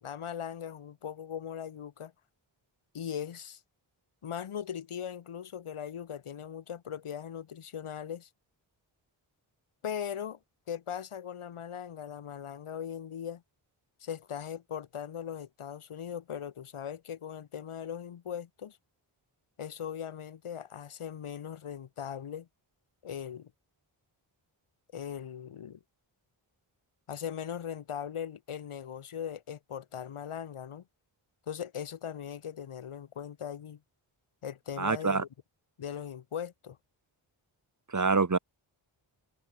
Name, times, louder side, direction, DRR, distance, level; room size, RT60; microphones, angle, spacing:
voice 1, 0.0-2.1 2.9-3.6 4.2-8.3 9.8-10.4 10.7-13.4 14.0-18.8 19.6-22.5 23.0-23.5 24.9-25.8 27.1-30.8 31.5-33.8 34.4-35.3 35.8-36.8, left 8 dB, 85° left, 2.4 m, -39 dB
voice 2, 34.8-35.2 37.9-38.4, right 4 dB, 35° right, 2.1 m, -26 dB
cardioid pair, 45°, 49 cm